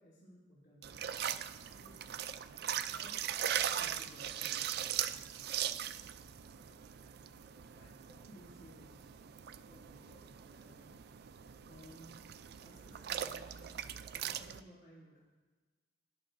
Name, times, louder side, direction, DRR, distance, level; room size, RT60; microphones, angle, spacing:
voice 1, 0.0-3.4 3.7-5.8 6.3-15.2, equal, 65° left, -10 dB, 2.6 m, -60 dB
sound 1, 0.8-14.6, right 10 dB, 50° right, 0.3 m, -40 dB
17.0 x 10.0 x 2.7 m, 1.3 s
head